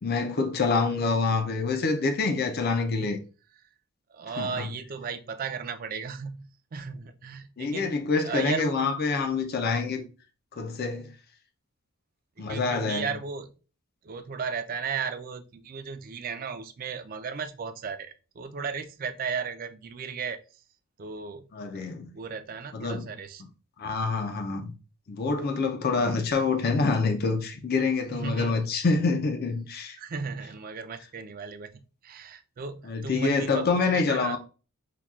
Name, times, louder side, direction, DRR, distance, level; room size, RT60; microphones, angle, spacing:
voice 1, 0.0-3.2 4.4-4.7 7.6-10.0 10.6-11.1 12.4-13.1 21.5-22.1 22.7-23.1 23.8-24.7 25.1-30.0 32.8-34.4, left 4 dB, 45° left, 0.4 m, -26 dB
voice 2, 4.1-6.5 6.7-7.9 8.2-8.9 12.4-13.5 14.0-20.4 21.0-21.4 22.1-23.4 26.0-26.2 28.1-28.6 30.0-34.4, right 5 dB, 40° right, 0.4 m, -35 dB
5.6 x 2.2 x 2.4 m
head